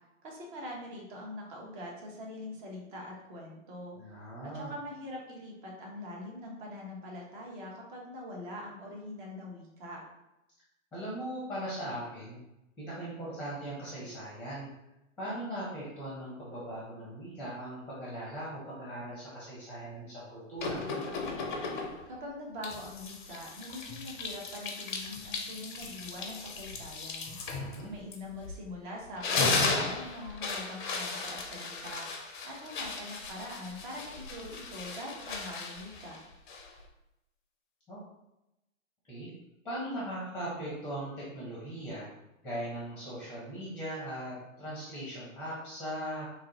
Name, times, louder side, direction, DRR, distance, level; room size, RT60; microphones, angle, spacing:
voice 1, 0.2-4.0 4.4-10.0 22.1-27.4 27.9-32.1 32.4-36.2, left 1 dB, 40° right, -2 dB, 0.9 m, -43 dB
voice 2, 4.0-4.7 10.9-12.4 12.8-14.7 15.2-20.8 27.5-27.9 37.9-38.0 39.1-39.3 39.6-42.1 42.4-46.3, right 1 dB, 5° left, -7 dB, 0.7 m, -39 dB
sound 1, 20.6-22.1 22.6-28.7 29.0-36.9, left 4 dB, 40° left, 0.5 m, -36 dB
3.0 x 2.5 x 2.8 m, 0.92 s
figure-of-eight pair, 110°, 41 cm